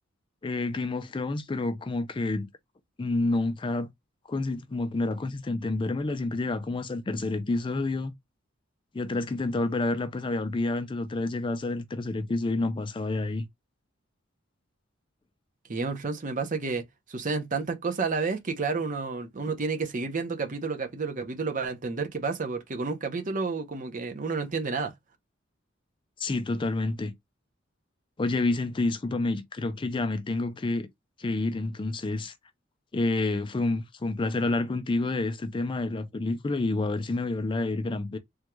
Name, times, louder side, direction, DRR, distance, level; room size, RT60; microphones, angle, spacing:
voice 1, 0.4-2.5 3.0-3.9 4.3-8.1 8.9-13.4 26.2-27.1 28.2-30.9 31.2-32.3 32.9-38.2, left 2 dB, 25° left, 0.4 m, -29 dB
voice 2, 15.7-16.8 17.1-24.9, right 4 dB, 45° right, 0.6 m, -30 dB
3.5 x 2.2 x 3.0 m
head